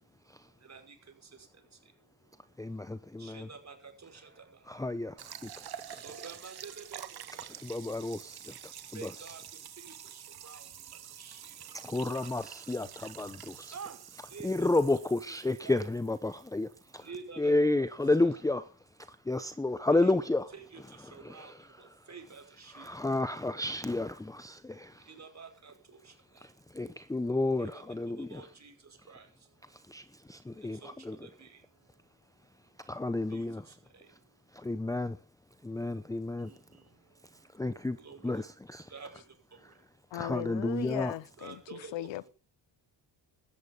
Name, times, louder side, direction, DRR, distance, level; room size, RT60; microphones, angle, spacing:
voice 1, 0.6-1.0 3.2-4.5 5.9-7.2 8.9-9.4 9.8-10.7 11.2-11.5 13.7-14.0 14.3-14.7 15.3-15.4 15.6-15.8 17.0-17.7 18.2-18.3 20.0-20.1 20.5-21.5 21.8-22.9 25.1-26.1 27.6-27.7 28.2-28.7 29.1-29.3 30.8-30.9 31.2-31.6 33.3-34.1 36.4-36.8 38.0-38.4 38.9-39.1 41.4-42.1, right 5 dB, 40° right, 5.6 m, -49 dB
voice 2, 2.6-3.5 4.7-6.0 7.5-9.3 11.7-13.7 14.4-17.1 17.4-20.5 20.8-22.1 22.7-25.1 26.3-28.5 29.6-31.3 32.5-33.7 34.1-34.2 34.5-35.2 35.6-36.6 37.2-38.9 39.6-39.8 40.1-41.2, left 2 dB, 10° left, 0.8 m, -32 dB
sound 1, 5.2-17.1, right 9 dB, 55° right, 1.7 m, -48 dB
voice 3, 40.1-42.3, left 15 dB, 85° left, 0.8 m, -38 dB
17.5 x 13.5 x 5.5 m
cardioid pair, 100°, 44 cm